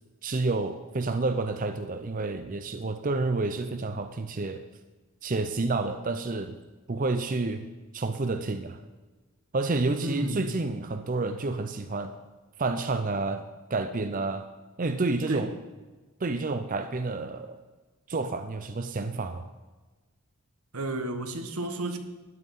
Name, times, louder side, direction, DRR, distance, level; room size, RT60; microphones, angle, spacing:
voice 1, 0.2-4.6 5.2-6.5 6.9-7.7 7.9-8.8 9.5-12.1 12.6-13.4 13.7-14.5 14.8-15.5 16.2-17.6 18.1-19.4, right 3 dB, 40° right, 8 dB, 0.6 m, -29 dB
voice 2, 10.0-10.5 15.3-15.5 20.7-22.0, right 2 dB, 85° right, 7 dB, 1.3 m, -31 dB
13.5 x 9.6 x 5.5 m, 1.3 s
head